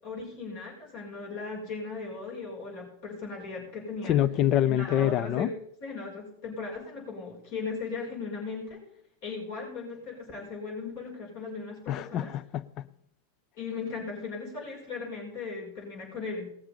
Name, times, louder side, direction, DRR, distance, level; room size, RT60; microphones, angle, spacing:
voice 1, 0.0-4.2 4.7-5.5 5.8-8.8 9.2-12.3 13.6-16.5, left 4 dB, 50° left, 5.3 m, -37 dB
voice 2, 4.0-5.5 11.9-12.8, left 11 dB, 35° left, 0.5 m, -26 dB
19.0 x 6.8 x 5.4 m
figure-of-eight pair, 90°, 0 cm